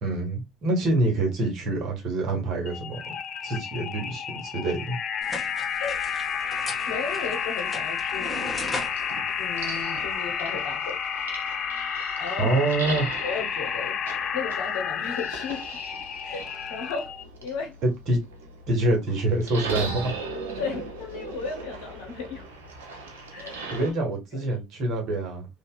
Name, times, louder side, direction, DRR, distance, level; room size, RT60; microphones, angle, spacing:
voice 1, 0.0-3.0 3.4-5.0 12.4-13.1 17.8-18.2 18.7-20.1 23.7-25.5, right 2 dB, 60° right, 1.3 m, -26 dB
sound 1, 2.7-17.2, left 7 dB, 50° left, 0.4 m, -31 dB
sound 2, 5.2-10.4, left 2 dB, 15° left, 1.3 m, -39 dB
voice 2, 5.8-6.3 6.6-8.4 9.4-11.0 12.2-12.6 13.2-15.8 16.2-17.1 17.4-17.8 20.6-22.5 23.3-23.9 24.3-24.6, left 5 dB, 75° left, 1.0 m, -35 dB
sound 3, 5.8-23.9, right 3 dB, 85° right, 0.7 m, -40 dB
2.8 x 2.8 x 2.3 m
hypercardioid pair, 60°, 0 cm